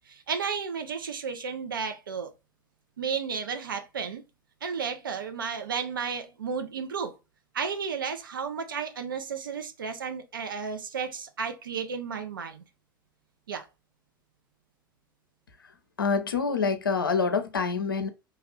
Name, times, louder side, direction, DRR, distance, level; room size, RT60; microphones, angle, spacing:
voice 1, 0.1-2.3 3.0-4.2 4.6-7.1 7.5-12.6 13.5-13.7, right 6 dB, 75° right, 0.6 m, -33 dB
voice 2, 16.0-18.1, left 5 dB, 80° left, 0.5 m, -26 dB
2.9 x 2.4 x 3.0 m
figure-of-eight pair, 85°, 11 cm